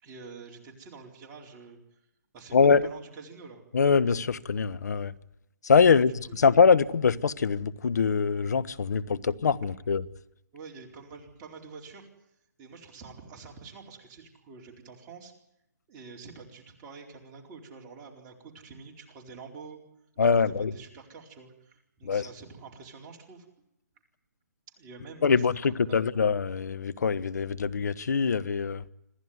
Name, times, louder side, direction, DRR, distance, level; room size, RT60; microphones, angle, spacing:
voice 1, 0.0-2.0 2.3-3.6 5.8-6.5 10.5-12.1 12.6-15.3 15.9-19.8 20.3-23.5 24.8-26.0, right 4 dB, 25° right, 4.4 m, -47 dB
voice 2, 3.7-5.1 5.6-6.1 6.4-10.0 20.2-20.7 22.0-22.2 25.2-28.8, left 5 dB, 65° left, 1.2 m, -23 dB
26.5 x 15.5 x 9.5 m
hypercardioid pair, 145°, 10 cm